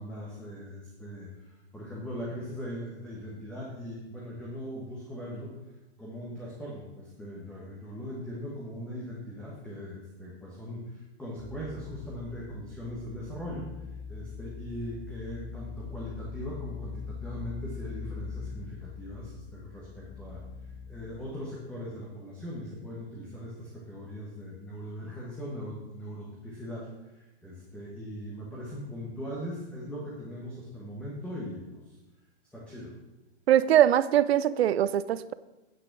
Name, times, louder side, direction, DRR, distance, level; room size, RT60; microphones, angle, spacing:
voice 1, 0.0-5.6 6.0-13.7 14.1-32.0 32.5-32.9, equal, 5° left, -5 dB, 1.2 m, -40 dB
sound 1, 11.4-21.3, left 6 dB, 55° left, 1.5 m, -42 dB
voice 2, 33.5-35.3, right 11 dB, 65° right, 17 dB, 0.6 m, -22 dB
9.0 x 5.9 x 6.0 m, 1.1 s
hypercardioid pair, 155°, 34 cm